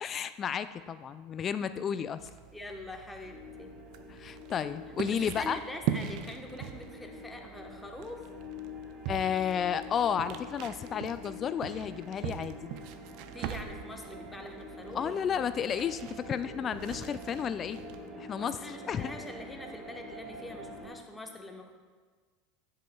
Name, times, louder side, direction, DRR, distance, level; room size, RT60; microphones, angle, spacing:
voice 1, 0.0-2.3 4.1-5.6 9.1-12.7 14.9-17.8 18.1-19.1, left 8 dB, 35° left, 13 dB, 0.3 m, -32 dB
sound 1, 2.2-18.1, right 10 dB, 60° right, 0.5 m, -42 dB
voice 2, 2.5-3.7 5.4-8.2 13.3-15.1 18.4-21.8, left 1 dB, 10° left, 3 dB, 1.1 m, -44 dB
sound 2, 3.2-20.9, left 2 dB, 30° right, 2.5 m, -46 dB
11.0 x 7.6 x 2.3 m, 1.5 s
hypercardioid pair, 85°, 0 cm